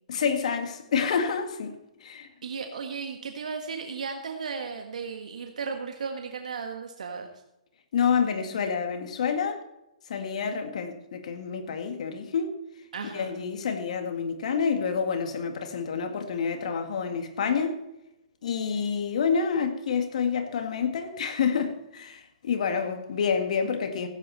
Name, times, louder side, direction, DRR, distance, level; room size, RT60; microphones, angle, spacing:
voice 1, 0.1-1.8 2.0-2.3 7.9-9.6 10.1-12.6 13.1-17.8 18.4-24.1, left 6 dB, 65° left, 1.9 m, -28 dB
voice 2, 2.4-7.3 12.9-13.3, right 5 dB, 75° right, 1.6 m, -35 dB
16.0 x 9.4 x 4.2 m
hypercardioid pair, 135°, 4 cm